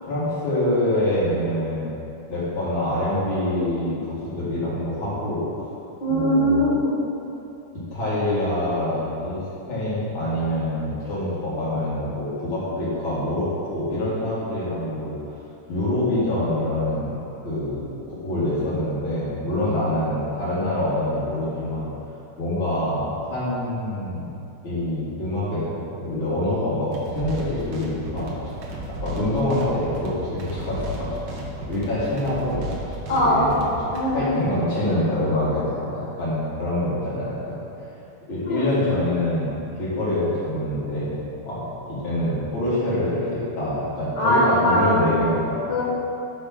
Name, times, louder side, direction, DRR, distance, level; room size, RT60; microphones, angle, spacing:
voice 1, 0.0-1.9 2.3-5.4 6.1-6.6 7.9-9.4 9.7-15.1 15.7-21.9 22.4-24.3 24.6-28.3 28.9-31.1 31.7-32.6 33.1-33.6 34.1-37.6 38.3-41.2 41.4-45.6, left 1 dB, 90° left, -11 dB, 2.8 m, -25 dB
voice 2, 6.0-6.9 33.1-33.5 33.9-34.3 38.5-38.6 44.2-45.1 45.7-45.8, equal, 60° left, -8 dB, 1.9 m, -20 dB
sound 1, 26.9-34.0, right 1 dB, 90° right, 1.8 m, -34 dB
8.5 x 3.6 x 5.8 m, 2.8 s
omnidirectional pair, 2.2 m